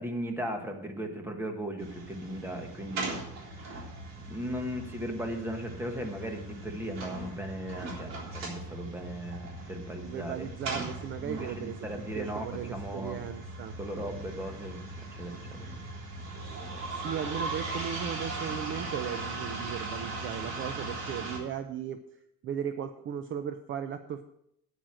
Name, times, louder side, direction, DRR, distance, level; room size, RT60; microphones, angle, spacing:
voice 1, 0.0-3.2 3.5-3.7 4.3-10.5 11.2-13.3 13.8-14.9 15.2-15.7, equal, 5° right, 3 dB, 1.5 m, -37 dB
sound 1, 1.8-21.4, right 2 dB, 60° right, 3.7 m, -39 dB
voice 2, 10.0-11.8 12.1-13.8 16.4-16.6 16.9-22.0 22.4-24.2, right 9 dB, 40° right, 9 dB, 0.6 m, -37 dB
9.3 x 8.9 x 6.3 m, 0.74 s
cardioid pair, 170°, 30 cm